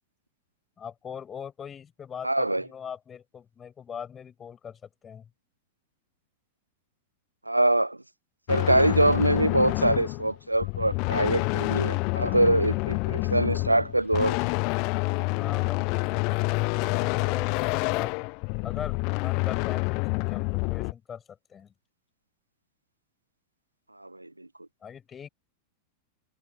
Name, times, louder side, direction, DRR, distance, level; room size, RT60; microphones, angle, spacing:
voice 1, 0.8-5.3 15.3-18.1 18.6-21.7 24.8-25.3, left 7 dB, 20° left, 5.8 m, -41 dB
voice 2, 2.2-2.6 7.5-8.0 8.5-14.4 24.0-24.5, right 1 dB, 85° right, 0.4 m, -24 dB
sound 1, 8.5-20.9, left 33 dB, 45° left, 0.3 m, -28 dB
figure-of-eight pair, 90°, 0 cm